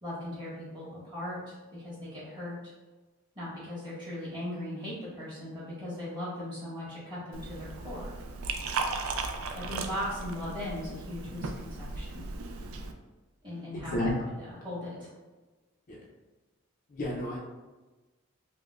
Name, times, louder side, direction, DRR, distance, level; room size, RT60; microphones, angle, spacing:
voice 1, 0.0-2.5 3.3-8.1 9.5-12.2 13.4-14.1 14.5-15.1, left 1 dB, 20° right, -9 dB, 1.5 m, -38 dB
Liquid, 7.3-12.9, right 4 dB, 75° right, 0.3 m, -36 dB
voice 2, 13.7-14.1 15.9-16.0 16.9-17.4, left 1 dB, 40° left, -4 dB, 0.4 m, -31 dB
5.1 x 2.1 x 2.3 m, 1.2 s
head